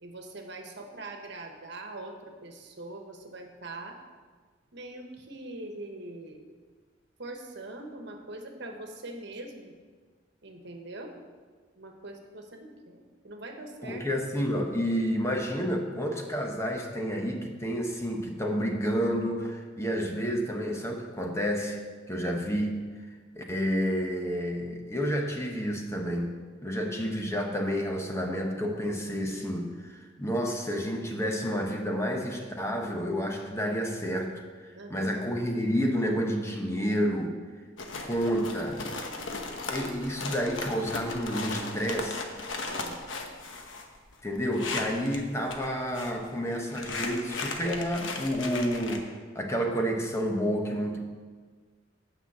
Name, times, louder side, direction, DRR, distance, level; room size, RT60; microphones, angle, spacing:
voice 1, 0.0-4.0 4.7-6.6 7.2-9.7 10.4-11.1 11.7-14.1 34.7-35.2 42.6-43.0, right 2 dB, 65° right, 3 dB, 1.2 m, -42 dB
voice 2, 13.8-21.8 22.1-22.8 23.4-34.4 34.9-37.3 38.0-38.8 39.7-42.2 44.2-51.0, equal, 15° left, 2 dB, 0.9 m, -30 dB
sound 1, 37.8-45.2 45.5-46.2 46.5-49.0, left 3 dB, 90° left, 1.1 m, -37 dB
9.0 x 5.8 x 7.2 m, 1.5 s
head